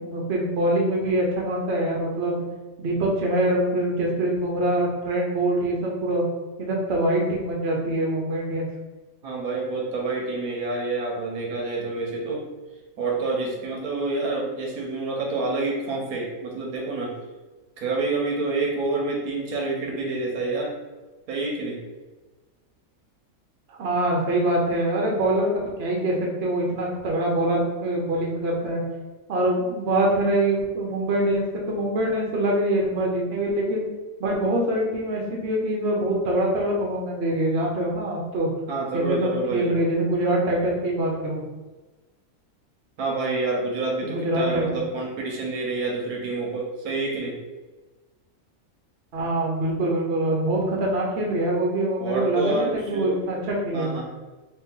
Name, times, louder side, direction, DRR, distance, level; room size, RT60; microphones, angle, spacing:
voice 1, 0.0-2.4 2.8-6.2 6.6-8.7 23.7-28.8 29.3-33.9 34.2-38.5 38.9-41.4 44.0-44.8 49.1-54.0, right 1 dB, 50° right, -1 dB, 1.0 m, -24 dB
voice 2, 9.2-12.4 13.0-17.2 17.8-20.7 21.3-21.8 38.7-39.7 43.0-47.4 52.0-53.2 53.7-54.0, right 3 dB, 80° right, -1 dB, 1.3 m, -28 dB
3.2 x 3.0 x 3.7 m, 1.2 s
omnidirectional pair, 1.5 m